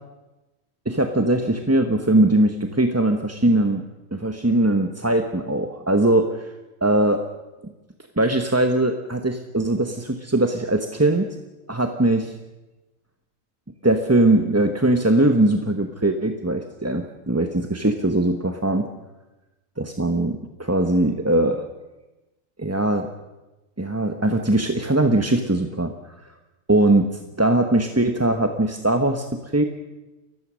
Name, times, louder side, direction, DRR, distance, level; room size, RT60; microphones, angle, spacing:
voice 1, 0.8-3.8 4.1-6.5 6.8-7.2 7.6-7.7 8.2-11.3 11.7-12.3 13.8-18.9 19.8-21.7 22.6-23.1 23.8-26.3 26.7-29.6, right 1 dB, 15° right, 6 dB, 0.9 m, -21 dB
29.0 x 15.5 x 6.3 m, 1.1 s
omnidirectional pair, 1.4 m